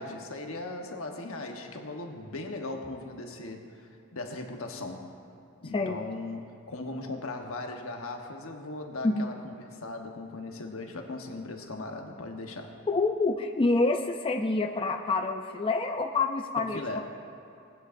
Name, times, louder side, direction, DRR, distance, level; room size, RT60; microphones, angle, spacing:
voice 1, 0.0-5.1 5.6-12.8 16.6-17.0, left 2 dB, 70° left, 3 dB, 1.1 m, -38 dB
voice 2, 12.9-17.0, left 3 dB, 25° left, 2 dB, 0.4 m, -27 dB
19.0 x 9.3 x 2.6 m, 2.6 s
head